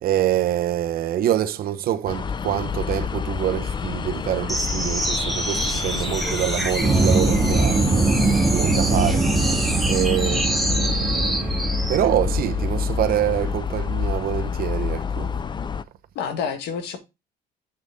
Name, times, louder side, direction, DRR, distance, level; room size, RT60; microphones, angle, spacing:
voice 1, 0.0-7.9 8.4-9.3 9.8-11.2 11.9-15.3, right 11 dB, 60° right, 0.9 m, -25 dB
sound 1, 2.1-15.8, left 6 dB, 25° left, 0.6 m, -28 dB
sound 2, 4.5-12.0, right 1 dB, ahead, 1.4 m, -28 dB
sound 3, 6.8-13.6, right 3 dB, 20° right, 1.8 m, -23 dB
voice 2, 16.2-17.0, left 7 dB, 80° left, 1.9 m, -29 dB
8.1 x 6.5 x 3.6 m
cardioid pair, 110°, 17 cm